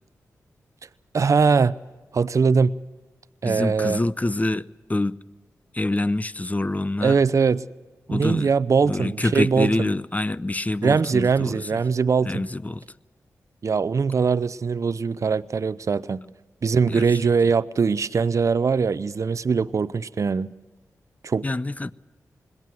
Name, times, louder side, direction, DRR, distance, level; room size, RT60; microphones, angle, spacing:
voice 1, 1.1-1.7 2.1-2.7 3.4-4.0 7.0-7.6 8.1-9.9 10.8-12.4 13.6-16.2 16.6-20.5 21.2-21.4, right 5 dB, 50° right, 0.6 m, -21 dB
voice 2, 3.4-5.2 5.7-7.2 8.1-8.5 8.8-11.8 12.2-12.8 16.9-17.3 21.4-21.9, left 2 dB, 25° left, 0.7 m, -26 dB
21.5 x 16.5 x 7.5 m
supercardioid pair, 40°, 7 cm